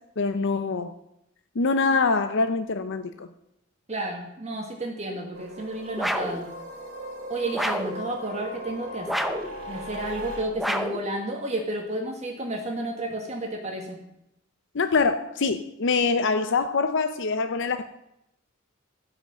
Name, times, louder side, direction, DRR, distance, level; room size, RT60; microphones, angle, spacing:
voice 1, 0.2-0.9 1.6-3.3 14.7-17.8, left 4 dB, 60° left, 9 dB, 0.6 m, -24 dB
voice 2, 3.9-6.5 7.3-9.1 9.7-14.0, right 1 dB, 35° right, 1 dB, 1.7 m, -31 dB
sound 1, 5.3-10.4, equal, 70° right, 2.6 m, -38 dB
sound 2, 6.0-6.4 7.5-8.0 9.1-9.5 10.6-11.1, equal, ahead, 0.7 m, -28 dB
14.5 x 5.9 x 7.7 m, 0.84 s
head